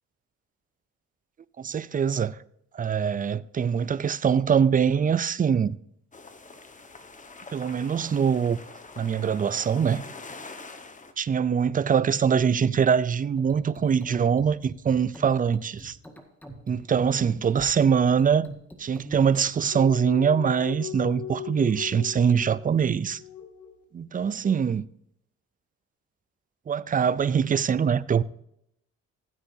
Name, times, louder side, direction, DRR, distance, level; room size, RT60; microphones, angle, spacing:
voice 1, 1.6-2.4 2.7-5.8 7.5-8.6 9.0-10.1 11.2-16.0 16.7-18.5 18.8-23.2 23.9-24.9 26.7-28.2, right 7 dB, 30° right, 0.5 m, -23 dB
sound 1, 6.1-11.1, left 3 dB, 25° left, 1.3 m, -44 dB
sound 2, 13.4-19.4, right 1 dB, 5° left, 1.8 m, -44 dB
sound 3, 19.7-23.8, left 8 dB, 80° left, 1.8 m, -38 dB
15.5 x 8.4 x 2.7 m
cardioid pair, 90°, 30 cm